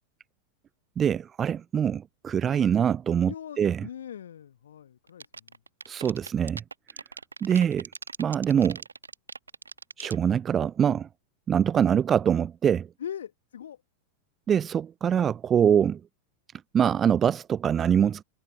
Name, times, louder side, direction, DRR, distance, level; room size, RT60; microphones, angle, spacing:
voice 1, 1.0-3.9 5.9-6.6 7.4-7.9 8.2-8.8 10.0-11.1 11.5-12.9 14.5-16.0 16.7-18.2, right 8 dB, 25° right, 0.3 m, -24 dB
voice 2, 3.3-5.5 11.7-11.8 13.0-13.8, left 9 dB, 65° left, 1.3 m, -41 dB
sound 1, 5.1-10.2, right 4 dB, 75° right, 1.1 m, -40 dB
figure-of-eight pair, 90°, 0 cm